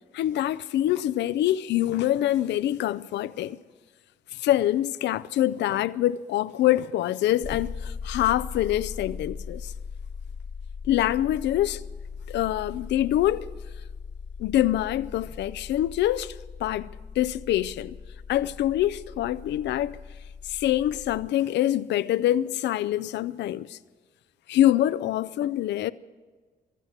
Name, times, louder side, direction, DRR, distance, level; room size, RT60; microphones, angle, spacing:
voice 1, 0.1-3.6 4.3-9.7 10.9-11.8 12.3-13.5 14.4-16.3 16.6-16.9 17.2-18.0 18.3-20.0 20.4-23.8 24.5-25.9, left 13 dB, 85° left, 0.5 m, -25 dB
sound 1, 7.4-21.3, left 5 dB, 40° left, 0.9 m, -39 dB
16.0 x 11.5 x 8.0 m
cardioid pair, 65°, 18 cm